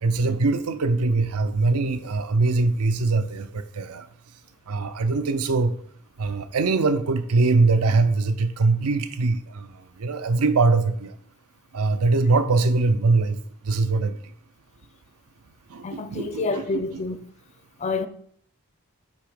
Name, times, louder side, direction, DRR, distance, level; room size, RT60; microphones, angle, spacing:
voice 1, 0.0-4.1 4.7-5.8 6.2-9.7 10.0-11.1 11.7-13.4 13.6-14.2 15.7-17.0, right 3 dB, 85° right, 0.5 m, -22 dB
voice 2, 15.8-17.2 17.8-18.1, left 3 dB, 30° left, 0.4 m, -28 dB
8.0 x 2.9 x 5.0 m
head